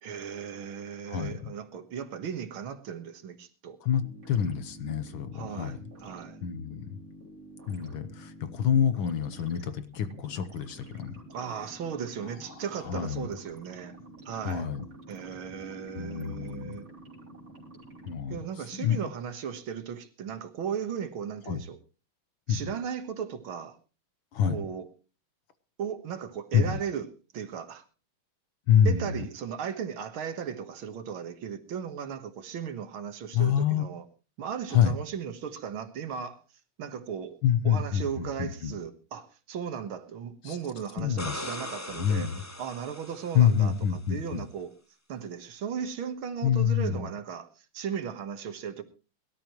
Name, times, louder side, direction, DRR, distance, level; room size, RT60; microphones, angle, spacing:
voice 1, 0.0-3.8 5.3-6.4 11.3-13.9 14.3-14.7 15.1-16.9 18.3-21.8 22.5-23.8 24.5-24.9 25.8-27.1 27.3-27.8 28.9-34.0 34.4-36.4 36.8-37.4 37.6-42.3 42.6-43.7 44.1-44.7 45.1-47.5 47.7-48.8, right 7 dB, 75° right, 2.3 m, -36 dB
voice 2, 1.1-1.5 3.8-4.0 4.3-5.9 6.4-7.0 7.7-11.2 12.2-13.3 14.4-14.8 16.0-16.8 18.0-19.1 21.5-21.6 22.5-22.6 24.3-24.6 26.5-26.8 28.7-29.3 33.3-33.9 34.7-34.9 37.4-38.8 40.4-40.6 41.0-41.5 41.9-42.4 43.3-44.4 46.4-47.1, left 8 dB, 75° left, 1.8 m, -27 dB
sound 1, 4.0-18.2, right 1 dB, 40° right, 4.0 m, -49 dB
sound 2, 41.0-43.8 46.6-46.7, left 1 dB, 15° left, 0.6 m, -40 dB
22.5 x 12.5 x 3.1 m
omnidirectional pair, 2.3 m